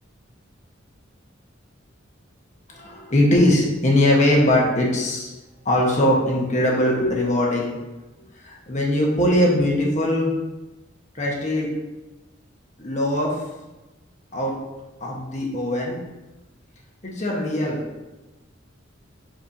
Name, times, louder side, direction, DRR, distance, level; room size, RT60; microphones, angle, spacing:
voice 1, 2.7-5.3 5.6-7.8 8.4-10.3 11.1-11.7 12.8-13.4 14.3-14.6 15.0-16.0 17.0-17.8, left 1 dB, 35° left, -2 dB, 1.3 m, -21 dB
8.2 x 4.3 x 2.8 m, 1.1 s
head